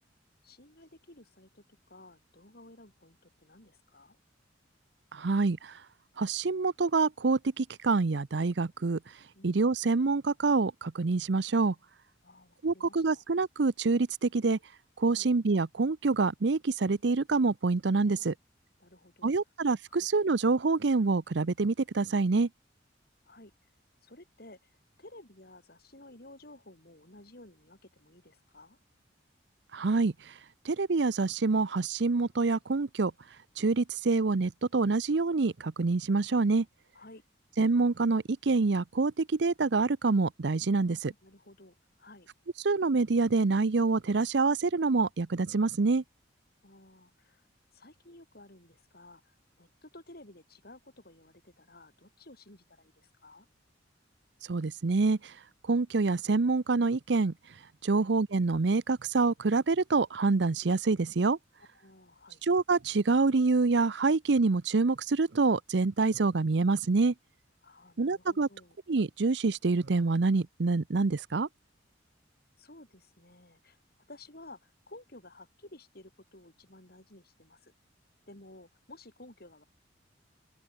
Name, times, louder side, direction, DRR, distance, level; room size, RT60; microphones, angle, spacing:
voice 1, 0.4-4.2 9.3-9.6 12.2-13.2 15.1-15.3 18.1-18.2 18.8-19.3 19.9-20.1 23.3-23.7 24.0-28.8 36.9-37.2 40.7-42.3 46.6-47.4 47.7-53.5 57.9-58.1 61.7-62.4 67.6-68.8 72.6-73.8 74.1-77.7 78.3-79.6, left 2 dB, 55° left, 5.7 m, -54 dB
voice 2, 5.1-5.7 6.2-9.0 9.4-11.7 12.6-14.6 15.0-18.3 19.2-22.5 29.7-30.1 30.6-33.1 33.6-36.7 37.6-41.1 42.6-46.0 54.5-55.3 55.7-57.3 57.8-61.4 62.5-67.1 68.0-68.5 68.9-71.5, right 3 dB, 65° right, 0.6 m, -26 dB
open air
head